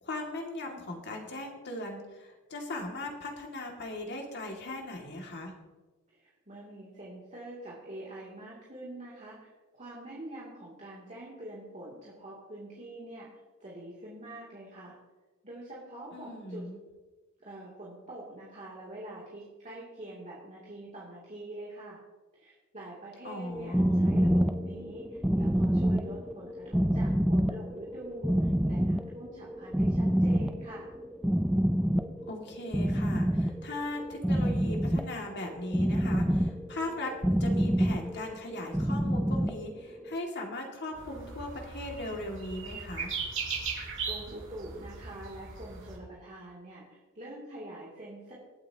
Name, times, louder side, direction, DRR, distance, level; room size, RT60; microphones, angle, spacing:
voice 1, 0.0-5.5 16.1-16.8 23.2-24.0 32.3-43.1, left 1 dB, 55° left, 1 dB, 2.3 m, -38 dB
voice 2, 6.1-13.3 13.6-14.9 15.4-16.7 17.4-22.0 22.3-30.9 43.7-43.8 44.0-48.3, right 1 dB, 35° right, -6 dB, 2.8 m, -45 dB
sound 1, 23.5-40.1, equal, 5° right, 0.5 m, -27 dB
sound 2, 40.9-46.0, right 5 dB, 65° right, 4.8 m, -38 dB
25.5 x 8.6 x 2.9 m, 1.3 s
head